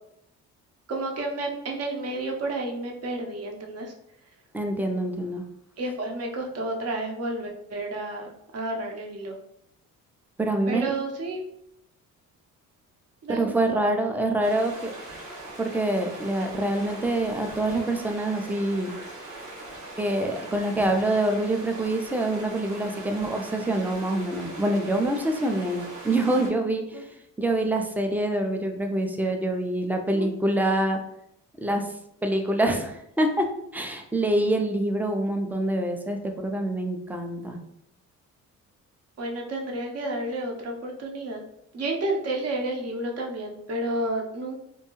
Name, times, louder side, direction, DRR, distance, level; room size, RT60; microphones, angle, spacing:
voice 1, 0.9-3.9 5.8-9.3 10.7-11.4 13.2-13.8 26.9-27.0 30.1-30.3 39.2-41.4 41.7-44.6, right 2 dB, 45° right, 1 dB, 0.7 m, -31 dB
voice 2, 4.5-5.4 10.4-10.9 13.3-14.9 15.6-18.9 20.0-27.1 27.4-31.0 31.6-31.9 32.2-37.6, right 1 dB, 5° right, 4 dB, 0.4 m, -26 dB
sound 1, 14.4-26.5, right 2 dB, 90° right, 1.0 m, -41 dB
2.6 x 2.2 x 3.0 m, 0.77 s
supercardioid pair, 70°, 34 cm